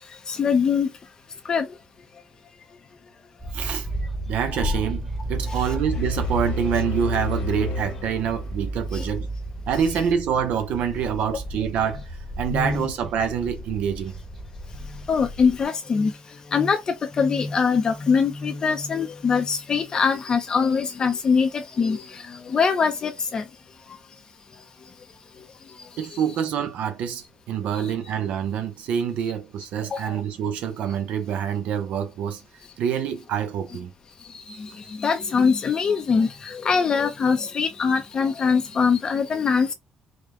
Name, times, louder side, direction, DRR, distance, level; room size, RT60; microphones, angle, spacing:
voice 1, 0.3-0.9 1.5-1.7 4.6-4.7 5.7-5.8 8.9-9.0 12.5-12.9 15.1-16.1 16.5-23.4 27.7-27.9 29.9-30.1 34.5-34.7 35.0-39.7, left 5 dB, 35° left, 0.5 m, -23 dB
sound 1, 3.4-15.6, right 1 dB, 5° left, 0.9 m, -33 dB
voice 2, 3.5-3.9 4.3-9.3 9.7-14.2 26.0-32.4 32.8-33.9, right 8 dB, 75° right, 0.7 m, -26 dB
sound 2, 5.8-8.8, left 1 dB, 75° left, 1.5 m, -30 dB
4.9 x 2.1 x 3.6 m
cardioid pair, 155°, 2 cm